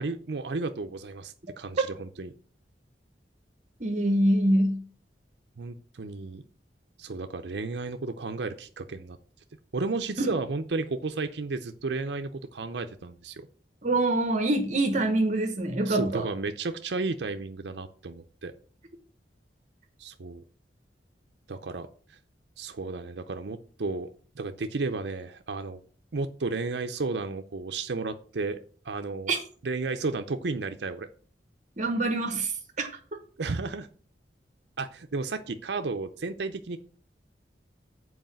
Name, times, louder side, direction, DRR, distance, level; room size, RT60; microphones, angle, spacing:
voice 1, 0.0-2.3 5.6-6.4 7.0-9.2 9.7-13.5 15.9-18.5 20.0-20.4 21.5-22.2 22.6-24.1 24.4-25.8 26.1-28.6 28.8-29.3 29.6-31.1 33.4-33.9 34.8-36.8, right 3 dB, 70° right, 7 dB, 0.6 m, -33 dB
voice 2, 3.8-4.8 10.2-10.3 13.8-16.3 29.3-29.4 31.8-32.5 32.8-32.9, right 1 dB, 45° right, 5 dB, 1.1 m, -25 dB
8.0 x 4.8 x 7.4 m, 0.43 s
head